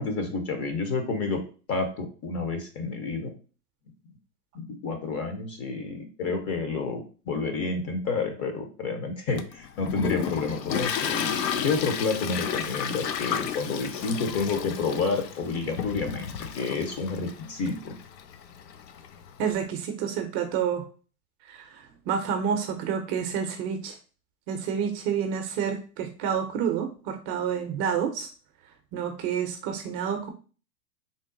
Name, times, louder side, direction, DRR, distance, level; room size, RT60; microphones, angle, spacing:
voice 1, 0.0-1.4 1.7-3.3 4.5-11.3 11.6-17.9, left 4 dB, 30° left, 5 dB, 0.8 m, -29 dB
Toilet flush, 9.4-19.6, left 8 dB, 85° left, 0.6 m, -33 dB
voice 2, 19.4-20.8 21.4-23.9 24.5-28.3 28.9-30.3, right 7 dB, 35° right, 5 dB, 0.6 m, -29 dB
3.7 x 2.1 x 3.8 m, 0.37 s
hypercardioid pair, 110°, 49 cm